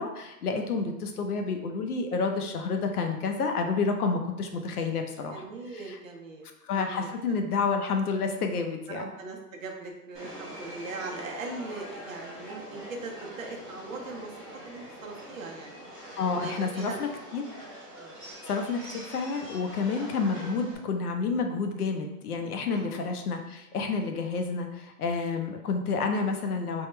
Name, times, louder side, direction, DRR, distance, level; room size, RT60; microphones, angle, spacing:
voice 1, 0.0-5.4 5.9-6.0 6.6-9.1 16.2-17.4 18.5-26.9, left 4 dB, 65° left, 5 dB, 0.7 m, -29 dB
voice 2, 5.2-6.5 6.7-7.4 8.9-15.9 16.3-17.1 18.0-18.2 22.7-22.9, right 3 dB, 55° right, 1 dB, 0.8 m, -40 dB
Subway metro underground, 10.1-20.7, equal, 10° right, 0.9 m, -43 dB
3.5 x 2.3 x 4.3 m, 0.92 s
hypercardioid pair, 165°, 48 cm